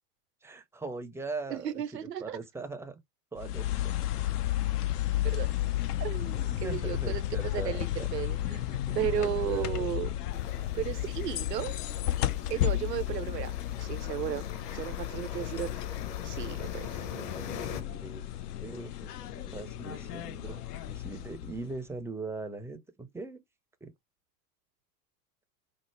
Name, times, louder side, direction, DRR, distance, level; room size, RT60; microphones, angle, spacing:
voice 1, 0.4-3.0 3.3-4.0 6.6-8.1 8.5-9.9 17.1-18.2 18.6-23.4 23.8-23.9, right 3 dB, 5° right, 0.4 m, -41 dB
voice 2, 1.5-2.4 5.3-5.5 6.0-10.1 10.7-11.7 12.5-15.8 16.2-16.9 19.9-20.0, right 11 dB, 90° right, 0.7 m, -35 dB
sound 1, 3.4-21.8, left 13 dB, 75° left, 0.6 m, -33 dB
sound 2, 10.3-17.8, left 7 dB, 40° left, 0.9 m, -43 dB
4.3 x 2.0 x 3.1 m
hypercardioid pair, 90°, 48 cm